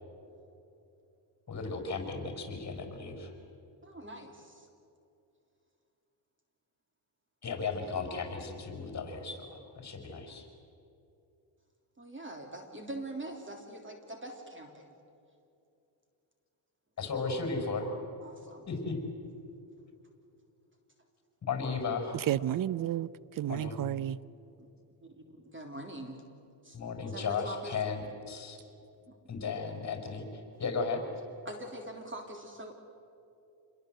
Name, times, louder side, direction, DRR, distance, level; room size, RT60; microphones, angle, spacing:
voice 1, 1.5-3.3 7.4-10.5 17.0-17.9 18.7-19.0 21.4-22.2 23.5-23.8 26.7-28.6 29.3-30.2 30.6-31.0, left 4 dB, 35° left, 6.0 m, -35 dB
voice 2, 3.8-4.7 12.0-14.9 18.2-18.7 24.6-24.7 25.0-26.2 26.6-26.8 27.1-27.7 29.1-29.2 31.4-32.7, right 1 dB, 25° right, 3.3 m, -44 dB
voice 3, 22.3-23.1 23.4-24.2, right 12 dB, 45° right, 0.6 m, -31 dB
28.0 x 22.0 x 8.0 m
cardioid pair, 95°, 48 cm